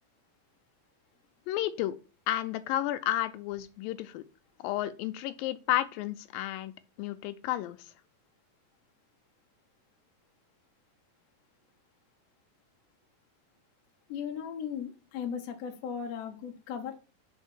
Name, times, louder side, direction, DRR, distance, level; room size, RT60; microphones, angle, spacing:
voice 1, 1.5-2.0 2.3-4.2 4.6-6.7 7.0-7.8, left 14 dB, 85° left, 2.3 m, -32 dB
voice 2, 14.1-17.0, left 7 dB, 65° left, 1.8 m, -37 dB
5.5 x 4.3 x 6.0 m
omnidirectional pair, 4.1 m